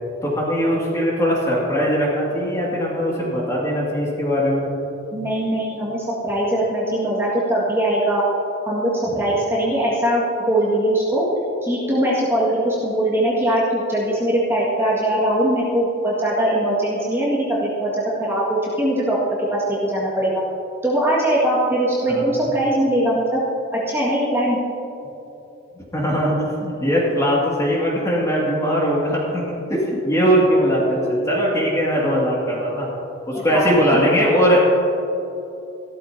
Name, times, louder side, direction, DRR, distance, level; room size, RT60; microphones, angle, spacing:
voice 1, 0.2-4.7 9.0-9.2 22.1-22.3 25.9-32.9 33.3-34.6, equal, 15° left, -5 dB, 2.3 m, -20 dB
voice 2, 5.1-8.2 8.7-11.2 11.6-19.2 19.5-20.4 20.8-23.4 23.7-24.6 33.5-33.7, right 1 dB, 10° right, -7 dB, 1.9 m, -21 dB
15.5 x 13.0 x 2.8 m, 2.9 s
head